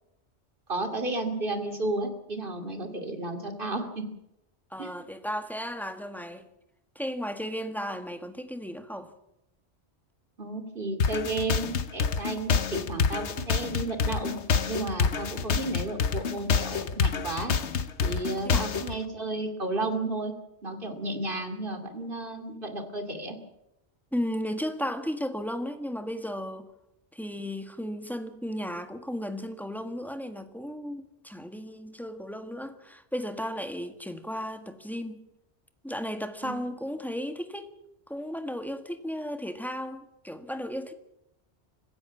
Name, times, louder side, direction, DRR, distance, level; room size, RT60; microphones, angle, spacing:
voice 1, 0.7-4.0 4.8-4.9 10.4-14.4 14.7-17.5 18.0-20.3 20.6-23.4 36.4-36.6, right 2 dB, 50° right, 2.8 m, -33 dB
voice 2, 4.7-6.5 6.9-9.1 18.4-18.7 24.1-26.7 27.1-35.3 35.8-37.7 38.1-40.9, equal, ahead, 1.6 m, -35 dB
sound 1, 11.0-18.9, left 5 dB, 90° left, 1.4 m, -27 dB
25.5 x 15.5 x 7.3 m
omnidirectional pair, 1.1 m